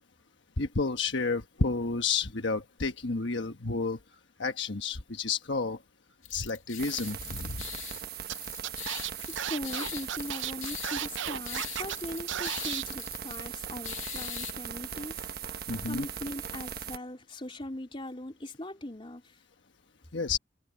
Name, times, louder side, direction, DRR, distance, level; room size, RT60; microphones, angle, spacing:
voice 1, 0.6-4.0 4.4-5.8 6.3-7.6 15.7-16.1 20.1-20.4, left 4 dB, 65° left, 1.3 m, -30 dB
sound 1, 6.2-14.5, left 13 dB, 90° left, 2.2 m, -43 dB
sound 2, 6.8-17.0, right 8 dB, 50° right, 1.2 m, -39 dB
Scratching (performance technique), 8.3-8.4 8.6-12.0 12.3-12.8, right 10 dB, 70° right, 0.5 m, -34 dB
voice 2, 9.5-15.2 15.8-19.4, left 1 dB, 25° left, 3.7 m, -40 dB
head